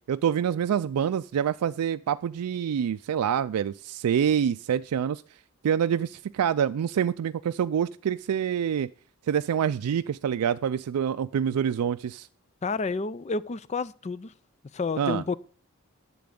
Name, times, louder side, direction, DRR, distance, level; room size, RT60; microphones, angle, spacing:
voice 1, 0.1-5.2 5.6-8.9 9.3-12.3 15.0-15.2, right 8 dB, 90° right, 0.3 m, -26 dB
voice 2, 12.6-14.3 14.7-15.4, left 4 dB, 30° left, 0.4 m, -30 dB
10.5 x 7.6 x 3.7 m
head